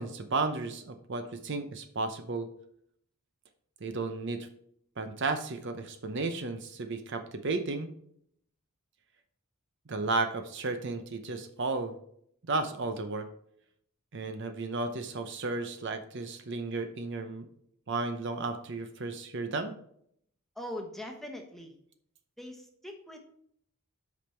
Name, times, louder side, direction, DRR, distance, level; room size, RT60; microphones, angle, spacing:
voice 1, 0.0-2.5 3.8-4.5 5.0-7.9 9.9-12.0 12.5-13.3 14.1-17.5 17.9-19.7, right 3 dB, 55° right, 8 dB, 0.7 m, -33 dB
voice 2, 20.6-21.7 22.4-23.2, left 1 dB, ahead, 2 dB, 1.1 m, -41 dB
8.3 x 5.3 x 4.4 m, 0.67 s
head